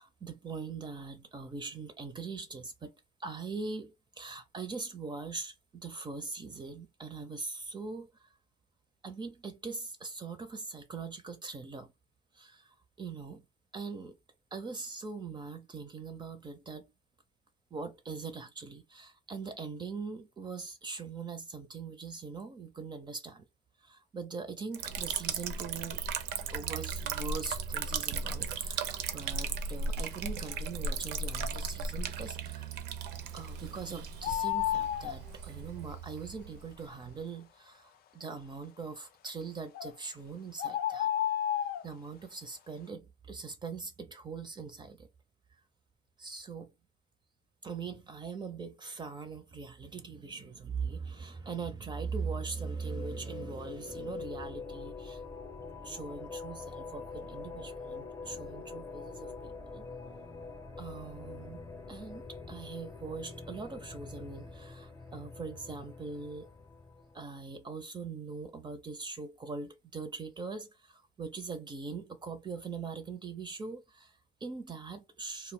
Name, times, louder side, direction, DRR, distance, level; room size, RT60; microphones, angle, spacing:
voice 1, 0.0-2.9 3.2-8.3 9.0-11.9 12.3-13.4 13.7-14.2 14.5-16.9 17.7-23.5 23.8-26.0 26.5-32.7 33.3-41.1 41.6-45.1 46.2-46.7 47.6-55.2 55.8-59.9 60.8-61.6 61.9-66.5 67.1-75.5, right 4 dB, 25° right, 0.4 m, -41 dB
Liquid, 24.7-37.2, right 5 dB, 85° right, 0.5 m, -36 dB
sound 1, 34.2-35.2 39.7-39.9 40.6-41.9, left 11 dB, 65° left, 0.4 m, -31 dB
sound 2, 52.0-67.4, left 4 dB, 15° left, 0.6 m, -45 dB
2.1 x 2.1 x 3.6 m
cardioid pair, 110°, 17 cm